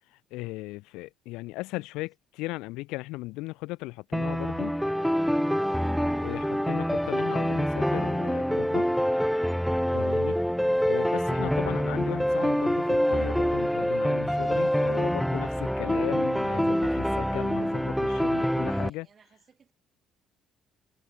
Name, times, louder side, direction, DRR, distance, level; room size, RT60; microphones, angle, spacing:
voice 1, 0.3-4.8 6.2-8.9 9.9-10.4 10.8-19.1, left 21 dB, 65° left, 0.5 m, -37 dB
sound 1, 4.1-18.9, equal, ahead, 0.3 m, -26 dB
voice 2, 18.3-19.7, right 6 dB, 40° right, 5.7 m, -62 dB
figure-of-eight pair, 50°, 0 cm